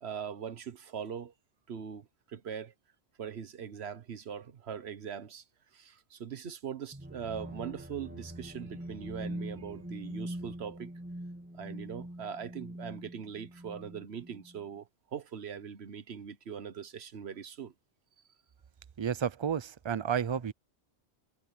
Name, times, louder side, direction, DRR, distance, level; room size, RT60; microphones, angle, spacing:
voice 1, 0.0-1.3 1.7-2.7 3.2-5.4 5.7-10.9 11.5-17.7, right 7 dB, 75° right, 1.3 m, -41 dB
sound 1, 6.9-14.6, right 1 dB, 10° right, 3.1 m, -43 dB
voice 2, 19.0-20.5, right 8 dB, 35° right, 0.5 m, -31 dB
omnidirectional pair, 1.1 m